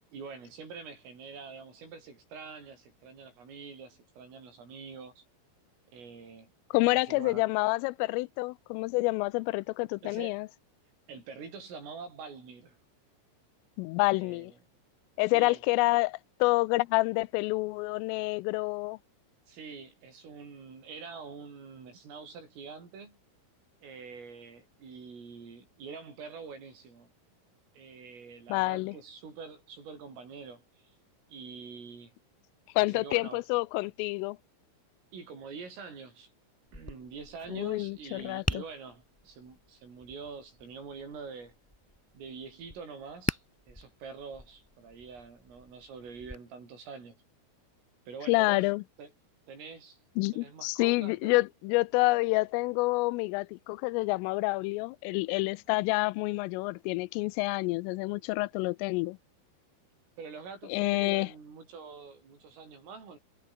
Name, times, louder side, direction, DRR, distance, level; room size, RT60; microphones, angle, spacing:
voice 1, 0.1-5.2 5.9-6.5 6.9-7.5 10.0-10.3 11.1-12.8 14.1-14.6 15.3-15.6 19.5-23.2 23.8-27.1 27.8-30.7 31.3-32.1 32.8-33.4 35.1-36.3 36.7-41.5 42.1-47.2 48.1-48.7 49.0-49.1 49.5-50.0 50.3-51.4 60.2-63.2, right 5 dB, 80° right, 10.5 m, -45 dB
voice 2, 6.7-10.5 13.8-14.5 15.2-19.0 28.5-29.0 32.8-34.4 37.5-38.6 48.3-48.8 50.2-59.2 60.7-61.3, left 23 dB, 90° left, 3.2 m, -28 dB
Tap, 36.7-46.3, left 1 dB, 10° left, 0.8 m, -42 dB
omnidirectional pair, 5.7 m